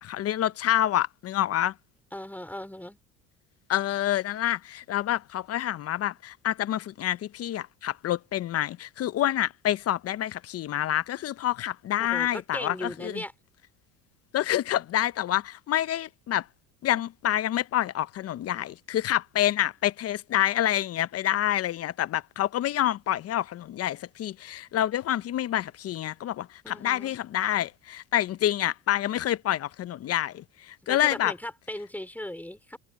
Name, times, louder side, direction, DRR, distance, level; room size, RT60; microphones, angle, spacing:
voice 1, 0.0-1.7 3.7-13.2 14.3-16.5 16.8-31.3, left 12 dB, 45° left, 0.8 m, -27 dB
voice 2, 2.1-3.0 12.1-13.3 26.6-27.2 30.8-32.8, left 1 dB, 5° left, 5.0 m, -37 dB
supercardioid pair, 90°, 34 cm